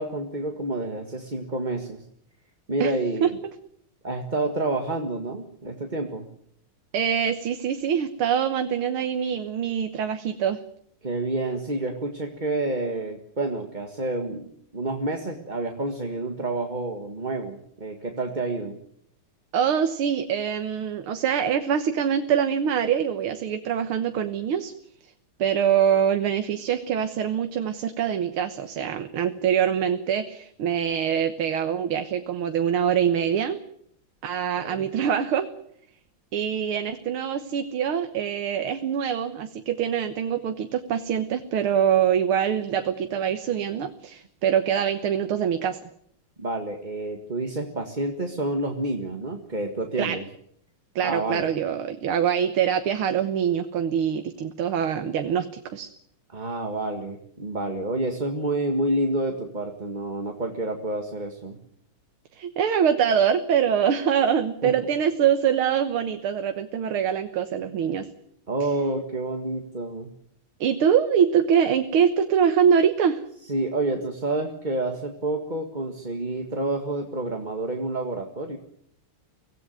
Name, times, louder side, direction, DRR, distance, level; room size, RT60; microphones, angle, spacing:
voice 1, 0.0-2.0 2.7-3.4 4.0-6.3 11.0-14.5 14.7-18.8 34.6-34.9 46.4-50.2 51.0-51.5 56.3-61.6 64.6-64.7 68.5-70.1 73.5-78.6, right 2 dB, 25° right, 4 dB, 1.7 m, -29 dB
voice 2, 6.9-10.6 19.5-24.7 25.0-25.1 25.4-33.6 34.2-35.5 36.3-45.8 50.0-50.2 51.0-55.9 62.3-68.1 70.6-73.2, right 8 dB, 80° right, 8 dB, 2.1 m, -24 dB
24.5 x 17.5 x 9.4 m, 0.71 s
omnidirectional pair, 2.3 m